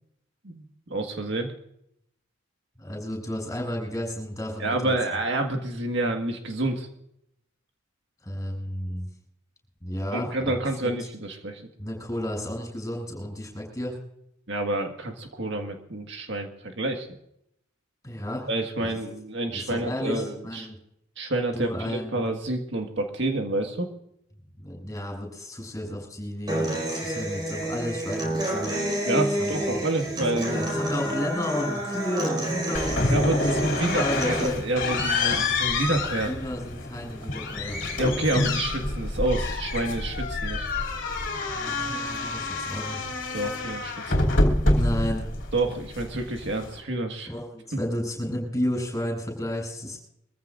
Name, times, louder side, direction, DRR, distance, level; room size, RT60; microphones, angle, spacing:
voice 1, 0.4-1.5 4.6-6.9 10.1-11.6 14.5-17.1 18.5-20.7 21.2-23.9 29.0-30.6 33.1-36.3 38.0-40.7 43.3-44.1 45.5-47.3 47.7-47.8, right 2 dB, 55° right, 3 dB, 1.7 m, -28 dB
voice 2, 2.8-4.9 8.2-9.1 9.8-10.9 11.8-14.0 18.0-18.5 18.8-18.9 19.5-20.8 21.5-22.2 24.6-28.7 29.4-29.8 30.4-33.6 33.8-34.6 36.2-37.8 41.5-43.1 44.5-45.3 47.3-50.0, equal, 15° left, 0 dB, 7.7 m, -32 dB
Human voice / Acoustic guitar, 26.5-34.5, right 1 dB, 20° right, 4.9 m, -29 dB
sound 1, 32.7-46.8, left 2 dB, 60° left, 3.0 m, -27 dB
24.5 x 15.0 x 2.6 m, 0.75 s
head